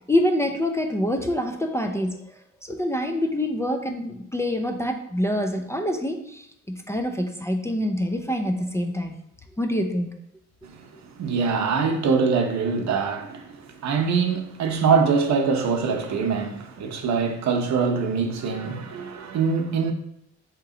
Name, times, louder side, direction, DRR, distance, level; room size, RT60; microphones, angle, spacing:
voice 1, 0.1-2.3 2.6-9.2 9.6-10.1, left 1 dB, 10° left, 0.4 m, -26 dB
voice 2, 11.2-19.9, right 5 dB, 65° right, 0.8 m, -23 dB
4.6 x 2.9 x 3.7 m
cardioid pair, 90°, 30 cm